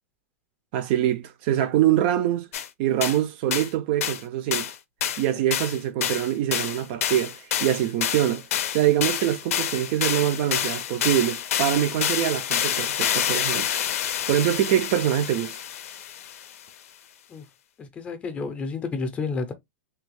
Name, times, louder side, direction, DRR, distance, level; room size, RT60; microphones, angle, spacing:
voice 1, 0.7-2.5 2.8-4.7 5.2-8.4 8.7-13.8 14.3-15.5, right 12 dB, 45° right, 0.4 m, -24 dB
sound 1, 2.5-2.7 3.0-3.2 3.5-3.7 4.0-4.2 4.5-4.8 5.0-16.5, left 10 dB, 80° left, 0.5 m, -28 dB
voice 2, 17.8-19.5, left 4 dB, 15° left, 0.5 m, -30 dB
3.3 x 2.2 x 3.1 m
supercardioid pair, 155°, 8 cm